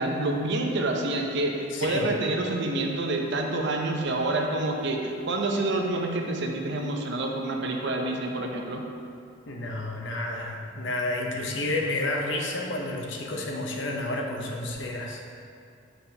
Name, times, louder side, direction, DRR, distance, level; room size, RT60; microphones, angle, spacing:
voice 1, 0.0-8.8, right 2 dB, 60° right, 2 dB, 0.7 m, -27 dB
voice 2, 1.7-2.1 9.5-15.2, left 2 dB, 65° left, 0 dB, 0.8 m, -30 dB
7.7 x 5.5 x 2.8 m, 2.4 s
head